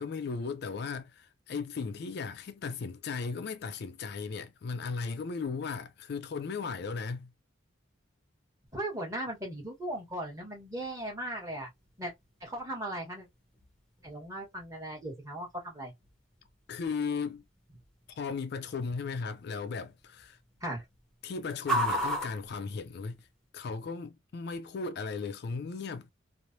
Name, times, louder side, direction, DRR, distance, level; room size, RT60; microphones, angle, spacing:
voice 1, 0.0-7.3 16.7-17.4 18.2-20.4 21.2-23.2 23.5-26.1, left 5 dB, 55° left, 0.4 m, -36 dB
sound 1, 8.7-23.5, right 1 dB, 5° left, 0.7 m, -41 dB
voice 2, 8.7-11.7 12.0-12.1 12.4-13.3 14.0-15.9 20.6-20.8, right 1 dB, 15° right, 1.2 m, -37 dB
3.1 x 2.0 x 2.6 m
head